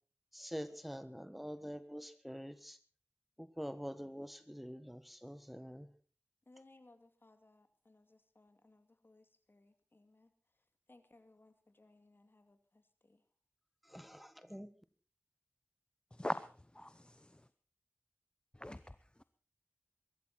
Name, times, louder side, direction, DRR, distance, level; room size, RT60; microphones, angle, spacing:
voice 1, 0.3-2.8 3.4-5.9 13.9-14.7, equal, ahead, 1.3 m, -46 dB
voice 2, 6.5-10.3 10.9-13.2, left 2 dB, 50° left, 2.5 m, -65 dB
voice 3, 16.1-17.5 18.5-19.2, left 1 dB, 20° left, 0.8 m, -43 dB
22.5 x 13.5 x 4.3 m
wide cardioid pair, 45°, 5 cm